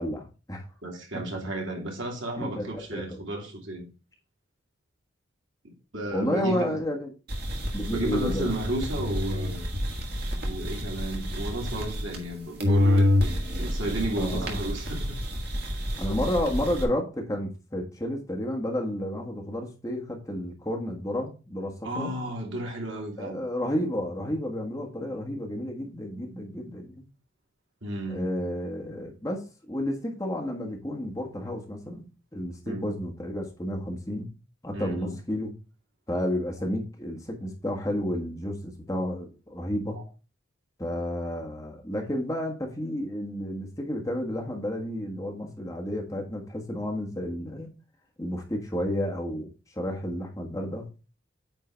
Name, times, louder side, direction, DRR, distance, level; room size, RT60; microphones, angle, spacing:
voice 1, 0.0-0.6 1.1-1.2 2.3-3.2 6.1-7.1 7.7-8.5 14.1-14.5 16.0-22.1 23.2-27.1 28.1-32.0 32.3-34.3 34.6-35.5 36.1-40.0 40.8-47.7 48.2-49.5 49.7-50.9, left 1 dB, 15° left, 1.4 m, -31 dB
voice 2, 0.8-3.9 5.6-6.8 7.9-9.7 10.4-13.3 13.6-15.1 21.8-23.4 27.8-28.3 32.7-32.9 34.7-35.2, right 1 dB, 75° right, 2.5 m, -33 dB
sound 1, 7.3-12.3 12.6-16.8, left 1 dB, 50° right, 1.9 m, -28 dB
9.1 x 3.8 x 4.5 m
head